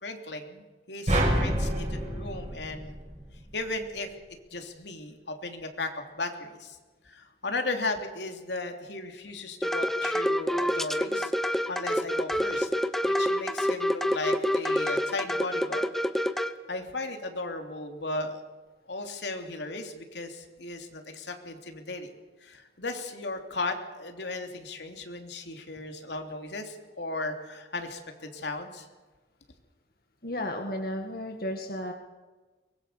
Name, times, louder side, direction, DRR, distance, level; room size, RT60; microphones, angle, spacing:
voice 1, 0.0-3.0 3.5-4.1 4.5-6.8 7.0-12.7 13.0-15.9 16.3-18.4 18.9-22.1 22.4-28.9, left 2 dB, 75° left, 4 dB, 3.1 m, -36 dB
sound 1, 1.1-3.5, right 1 dB, 35° right, 6.4 m, -28 dB
sound 2, 9.6-16.5, equal, ahead, 0.9 m, -27 dB
voice 2, 30.2-31.9, left 1 dB, 55° left, 3 dB, 2.0 m, -33 dB
23.5 x 21.5 x 6.9 m, 1.2 s
head